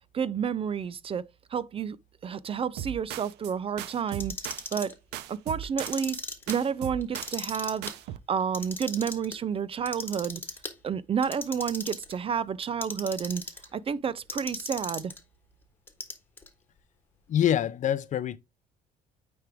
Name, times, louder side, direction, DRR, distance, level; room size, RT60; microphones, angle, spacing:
voice 1, 0.1-1.2 1.5-2.0 2.2-4.3 4.7-4.9 5.3-6.2 6.5-7.9 8.3-10.4 10.8-13.4 13.7-15.1, right 7 dB, 35° right, 0.4 m, -30 dB
sound 1, 2.8-3.5 3.8-4.9 5.1-6.2 6.5-7.6 7.8-8.2, right 12 dB, 85° right, 0.6 m, -38 dB
Clock, 4.1-4.9 5.6-6.5 7.0-7.9 8.4-9.3 9.9-10.7 11.2-12.1 12.6-13.7 14.3-15.2 15.9-16.5, left 3 dB, 15° left, 1.4 m, -37 dB
voice 2, 17.3-18.4, left 10 dB, 45° left, 0.6 m, -25 dB
9.3 x 3.4 x 3.4 m
cardioid pair, 110°, 17 cm